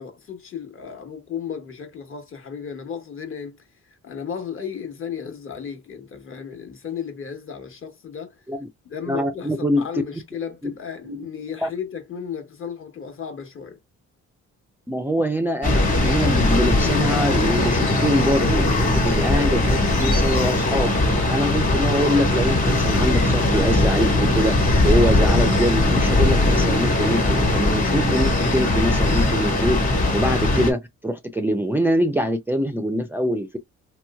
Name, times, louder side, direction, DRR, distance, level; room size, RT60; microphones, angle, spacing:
voice 1, 0.0-3.6 3.8-8.4 8.9-13.8, left 7 dB, 45° left, 1.2 m, -34 dB
voice 2, 9.1-9.8 10.6-10.7 11.1-11.2 11.6-11.7 14.9-20.9 21.3-24.6 24.8-29.8 30.1-33.6, equal, 5° right, 0.4 m, -24 dB
sound 1, 15.6-30.7, left 2 dB, 25° left, 1.4 m, -20 dB
3.0 x 3.0 x 2.3 m
cardioid pair, 90°, 30 cm